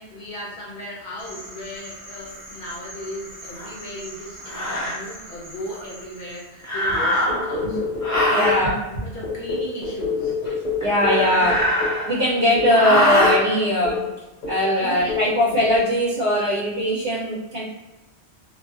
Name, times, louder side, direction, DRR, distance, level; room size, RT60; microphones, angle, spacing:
voice 1, 0.0-10.4 14.8-15.6, equal, 55° left, -4 dB, 0.8 m, -36 dB
sound 1, 1.2-6.7, right 1 dB, 20° right, 0.9 m, -42 dB
sound 2, 3.6-3.7 4.5-5.0 6.6-7.6 8.0-8.6 10.8-12.3 12.7-13.4, left 1 dB, 30° left, 0.3 m, -22 dB
sound 3, 7.3-8.7 9.2-12.1 12.6-12.8 13.2-13.5 13.8-14.1 14.4-14.7 15.1-15.3, left 5 dB, 85° left, 0.9 m, -27 dB
voice 2, 8.3-8.7 10.8-11.6 12.0-14.0 14.5-17.6, equal, 65° right, -7 dB, 0.9 m, -20 dB
2.5 x 2.3 x 2.3 m, 1.1 s
omnidirectional pair, 1.1 m